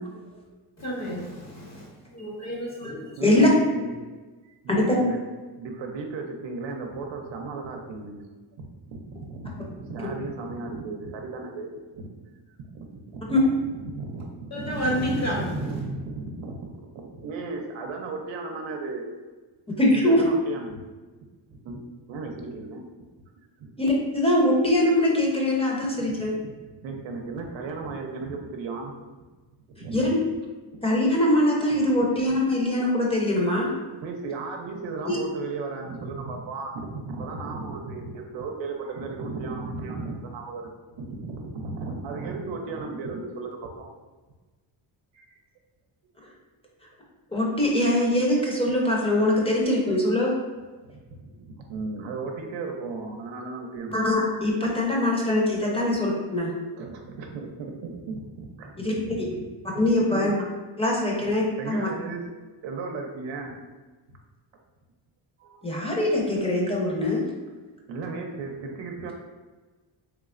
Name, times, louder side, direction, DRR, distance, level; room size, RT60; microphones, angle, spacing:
voice 1, 0.1-0.6 2.8-4.0 4.4-5.2 5.5-8.2 8.6-12.1 12.5-13.5 13.7-19.1 19.9-20.8 21.6-21.8 22.1-22.9 23.6-23.7 26.2-26.5 26.8-28.9 29.8-30.1 30.7-30.8 31.9-32.0 34.0-43.9 45.1-45.4 50.8-54.0 55.8-55.9 56.8-59.5 60.1-60.3 61.6-62.2 62.6-63.6 64.1-64.2 65.4-65.7 67.9-69.1, right 3 dB, 80° right, 2 dB, 0.7 m, -35 dB
voice 2, 0.8-1.9 2.1-3.1 14.5-15.9, equal, 35° left, -3 dB, 1.1 m, -30 dB
voice 3, 19.8-20.2 23.8-26.3 29.9-30.1 30.8-33.7 35.0-35.2 47.3-50.3 53.9-56.5 58.8-59.3 59.7-60.3 60.8-61.9 65.6-67.2, left 1 dB, 10° left, -3 dB, 0.8 m, -22 dB
3.4 x 3.1 x 2.4 m, 1.3 s
cardioid pair, 105°, 45 cm